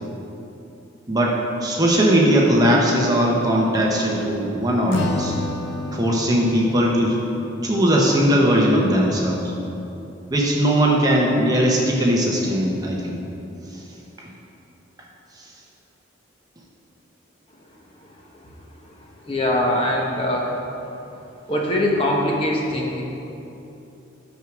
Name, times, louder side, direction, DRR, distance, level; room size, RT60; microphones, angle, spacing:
voice 1, 1.1-5.3 5.9-7.2 7.6-9.5 10.3-13.2 14.2-14.3, equal, 20° right, -2 dB, 0.9 m, -19 dB
Acoustic guitar / Strum, 4.9-8.2, left 1 dB, 65° left, 0.8 m, -30 dB
voice 2, 19.2-20.6 21.5-23.0, left 1 dB, 25° left, -2 dB, 1.1 m, -22 dB
9.1 x 6.3 x 6.0 m, 2.9 s
head